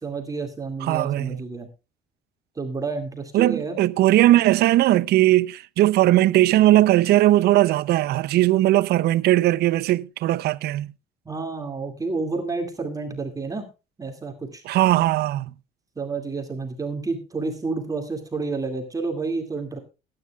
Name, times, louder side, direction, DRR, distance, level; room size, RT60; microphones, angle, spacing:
voice 1, 0.0-1.7 2.6-3.8 11.3-13.7 14.0-14.6 16.0-19.8, right 4 dB, 20° right, 2.3 m, -30 dB
voice 2, 0.8-1.4 3.3-10.9 14.7-15.5, right 15 dB, 70° right, 0.6 m, -19 dB
20.0 x 9.8 x 2.4 m
cardioid pair, 110°, 17 cm